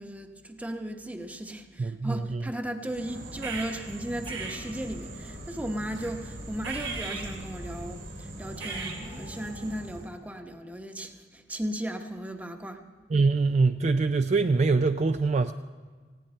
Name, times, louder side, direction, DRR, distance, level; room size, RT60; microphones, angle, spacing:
voice 1, 0.0-12.8, right 1 dB, 10° right, 0.9 m, -36 dB
voice 2, 1.8-2.1 13.1-15.5, right 3 dB, 40° right, 0.4 m, -23 dB
sound 1, 2.8-10.1, right 2 dB, 85° right, 3.1 m, -38 dB
19.0 x 16.0 x 4.4 m
head